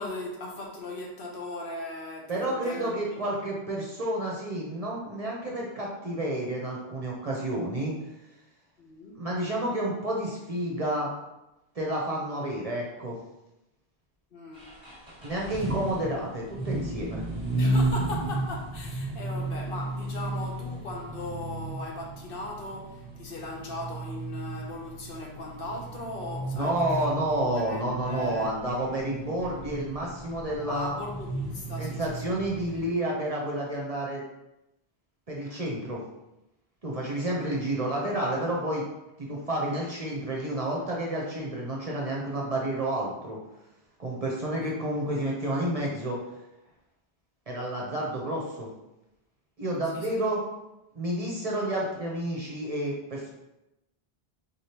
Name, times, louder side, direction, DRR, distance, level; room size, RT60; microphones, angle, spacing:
voice 1, 0.0-3.0 3.3-3.4 8.8-9.2 14.3-14.7 17.6-27.1 27.4-28.5 30.7-32.1 44.6-44.7 49.9-50.2, left 2 dB, 65° left, 0 dB, 0.9 m, -38 dB
voice 2, 2.3-7.9 9.2-11.1 11.7-13.2 15.2-17.2 26.5-31.0 31.8-34.2 35.3-36.0 36.8-38.8 39.2-43.4 44.0-46.2 47.5-48.7 49.6-50.4 50.9-53.3, right 1 dB, 40° right, -3 dB, 0.7 m, -30 dB
sound 1, 14.5-32.8, right 2 dB, 5° right, 1.2 m, -34 dB
3.9 x 3.4 x 2.8 m, 0.92 s
omnidirectional pair, 1.0 m